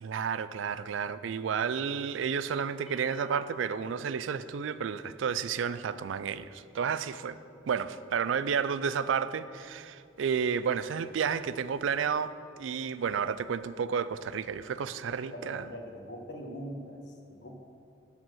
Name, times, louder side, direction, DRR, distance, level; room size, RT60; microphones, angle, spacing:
voice 1, 0.0-7.4 7.7-12.3 12.6-15.7, right 6 dB, 80° right, 15 dB, 0.4 m, -31 dB
sound 1, 2.9-5.3, equal, ahead, 1.0 m, -52 dB
voice 2, 15.0-17.6, equal, 65° left, 2 dB, 1.2 m, -42 dB
13.0 x 4.4 x 6.3 m, 2.5 s
head